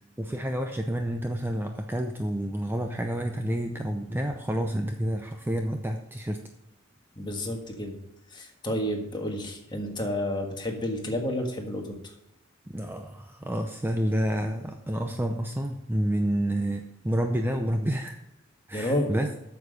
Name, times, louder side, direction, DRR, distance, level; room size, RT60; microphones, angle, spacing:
voice 1, 0.2-6.4 12.7-18.2 18.7-19.3, equal, 10° right, 5 dB, 0.5 m, -29 dB
voice 2, 7.2-8.0 8.3-12.1 18.7-19.1, left 1 dB, 20° left, 2 dB, 1.5 m, -30 dB
8.2 x 6.9 x 5.2 m, 0.88 s
head